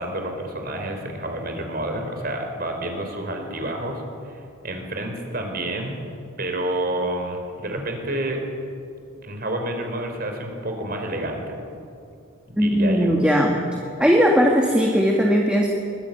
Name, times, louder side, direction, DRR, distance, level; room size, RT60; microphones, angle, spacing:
voice 1, 0.0-6.0 6.4-8.4 9.2-11.6 12.5-13.2, right 1 dB, 45° right, 3 dB, 4.2 m, -29 dB
voice 2, 12.6-13.6 14.0-15.7, equal, 5° right, -1 dB, 2.0 m, -18 dB
23.5 x 21.0 x 9.3 m, 2.5 s
head